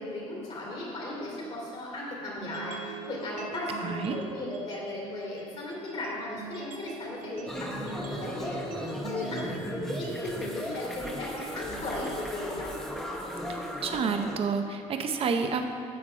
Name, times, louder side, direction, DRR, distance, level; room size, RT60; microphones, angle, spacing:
voice 1, 0.0-12.7, left 2 dB, 50° left, -5 dB, 2.5 m, -37 dB
sound 1, 2.4-14.4, right 6 dB, 80° right, 0.8 m, -44 dB
voice 2, 3.8-4.2 13.8-15.7, right 5 dB, 45° right, 5 dB, 0.8 m, -29 dB
sound 2, 7.5-14.4, equal, 5° left, 0.8 m, -36 dB
8.6 x 7.1 x 5.0 m, 2.3 s
cardioid pair, 145°, 14 cm